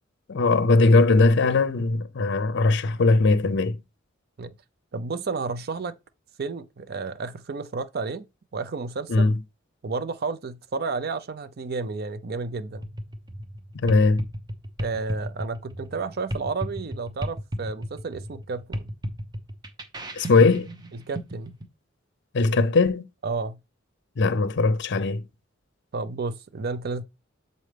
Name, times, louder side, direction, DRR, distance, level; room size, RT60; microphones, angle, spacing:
voice 1, 0.3-3.8 9.1-9.3 13.8-14.2 20.1-20.7 22.3-23.1 24.2-25.2, left 3 dB, 60° left, 0.5 m, -20 dB
voice 2, 4.9-5.9 6.4-8.2 8.5-9.3 9.8-12.9 14.8-18.9 21.1-21.6 23.2-23.6 25.9-27.0, right 4 dB, 50° right, 0.5 m, -31 dB
sound 1, 12.7-21.6, equal, 20° right, 0.8 m, -34 dB
7.5 x 4.1 x 3.3 m
head